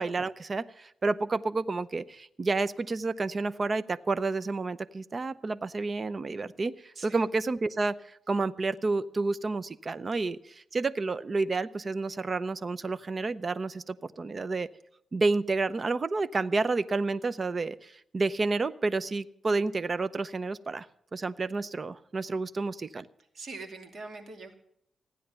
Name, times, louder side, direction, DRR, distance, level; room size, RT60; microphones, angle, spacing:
voice 1, 0.0-14.7 15.1-20.9 21.1-23.1, right 3 dB, 35° right, 15 dB, 0.6 m, -30 dB
voice 2, 23.3-24.5, right 3 dB, 60° right, 5 dB, 2.5 m, -42 dB
15.5 x 10.0 x 6.9 m, 0.72 s
cardioid pair, 105°, 0 cm